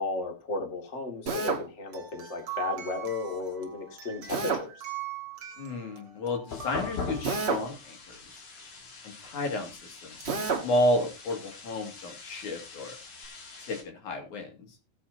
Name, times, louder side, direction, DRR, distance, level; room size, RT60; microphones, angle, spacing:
voice 1, 0.0-4.8, left 3 dB, 25° left, 5 dB, 1.8 m, -34 dB
Drill, 1.3-1.7 4.3-4.7 7.2-7.7 10.2-10.7, right 4 dB, 75° right, 0.6 m, -29 dB
sound 1, 1.9-7.9 10.2-10.3 11.3-11.4, right 10 dB, 40° right, 2.3 m, -42 dB
voice 2, 5.6-8.2 9.0-13.0 13.6-14.7, left 1 dB, 65° left, 4 dB, 3.4 m, -31 dB
sound 2, 6.5-13.8, left 4 dB, 50° left, 3.0 m, -42 dB
16.5 x 8.5 x 2.7 m, 0.27 s
omnidirectional pair, 3.8 m